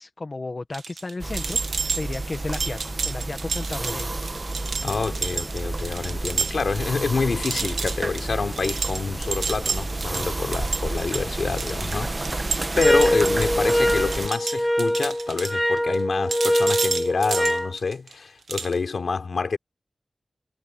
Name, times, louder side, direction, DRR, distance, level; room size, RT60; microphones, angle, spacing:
voice 1, 0.0-4.2, left 3 dB, 45° left, 1.3 m, -34 dB
sound 1, 0.7-6.8 7.1-7.2 7.4-16.0 16.3-18.1 18.5-18.7, right 5 dB, 85° right, 0.8 m, -30 dB
sound 2, 1.2-14.3, right 2 dB, 35° right, 1.1 m, -30 dB
voice 2, 4.8-19.6, left 4 dB, 80° left, 3.9 m, -27 dB
sound 3, 12.8-17.7, equal, 5° left, 1.2 m, -23 dB
wide cardioid pair, 105°, 0 cm